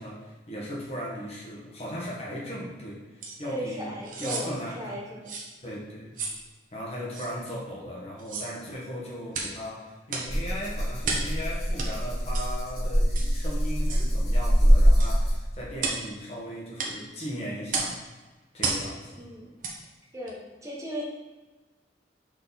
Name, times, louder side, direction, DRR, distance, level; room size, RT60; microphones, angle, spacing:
voice 1, 0.0-5.0 5.6-6.2 6.7-18.0 18.5-19.1, equal, 35° left, -5 dB, 1.4 m, -37 dB
sound 1, 3.2-3.4 4.0-4.5 5.3-5.5 6.2-6.4 7.1-7.3 8.2-8.5 9.3-9.6 10.1-10.3 11.0-11.3 11.8-11.9 12.3-12.5 13.1-13.3 13.9-14.1 15.0-15.2 15.8-16.1 16.8-17.0 17.7-18.0 18.6-18.9 19.6-19.8 20.3-20.4, right 4 dB, 45° right, 0.9 m, -32 dB
voice 2, 3.4-5.3 19.2-19.5 20.1-21.0, equal, 15° right, -4 dB, 1.2 m, -36 dB
Rattle (instrument), 10.3-15.6, equal, 60° left, 1.8 m, -23 dB
6.6 x 3.9 x 4.1 m, 1.2 s
head